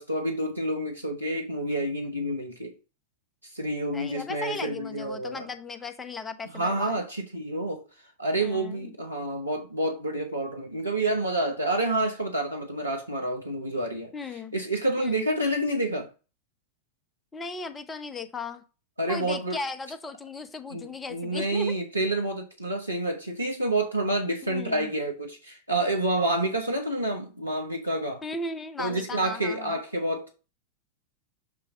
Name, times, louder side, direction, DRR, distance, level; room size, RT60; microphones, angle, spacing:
voice 1, 0.0-2.8 3.5-5.5 6.5-7.8 8.2-14.1 14.5-16.1 19.0-19.6 20.7-28.2 28.8-30.4, right 1 dB, 85° right, 0.8 m, -28 dB
voice 2, 3.9-6.9 8.4-8.9 14.1-14.5 15.0-15.3 17.3-18.6 19.1-21.7 24.5-24.9 28.2-29.8, left 3 dB, 15° left, 0.7 m, -36 dB
6.9 x 2.9 x 4.9 m
figure-of-eight pair, 90°, 0 cm